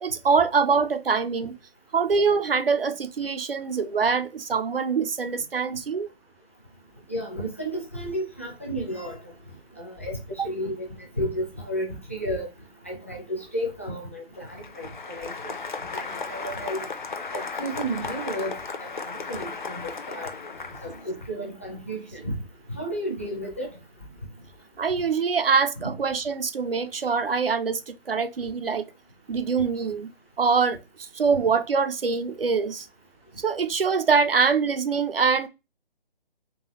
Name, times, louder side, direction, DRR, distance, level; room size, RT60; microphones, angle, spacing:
voice 1, 0.0-1.6 1.9-6.1 24.8-28.9 29.3-30.1 30.4-32.9 33.4-35.5, right 5 dB, 70° right, 0.6 m, -24 dB
voice 2, 7.1-9.2 9.8-10.9 11.2-12.5 12.8-15.5 15.9-16.8 17.3-20.3 20.8-22.3 22.7-23.7, equal, 15° left, 0.4 m, -32 dB
Applause, 14.3-21.3, left 4 dB, 55° left, 0.6 m, -35 dB
3.7 x 3.4 x 2.9 m
figure-of-eight pair, 145°, 30 cm